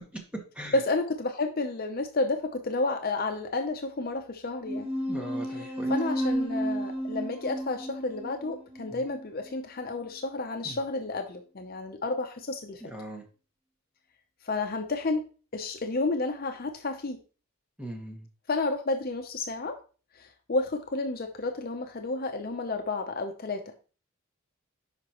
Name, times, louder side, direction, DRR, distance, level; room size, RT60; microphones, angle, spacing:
voice 1, 0.7-4.9 5.6-12.9 14.4-15.3 15.5-17.2 18.5-19.8 20.1-23.7, left 3 dB, 40° left, 6 dB, 0.6 m, -31 dB
sound 1, 4.6-9.6, right 1 dB, 25° right, 1.4 m, -32 dB
voice 2, 5.1-5.9 8.9-9.0 10.6-10.8 12.8-13.2 17.8-18.3, right 1 dB, 5° right, 1 dB, 1.4 m, -40 dB
10.0 x 5.1 x 3.0 m, 0.37 s
head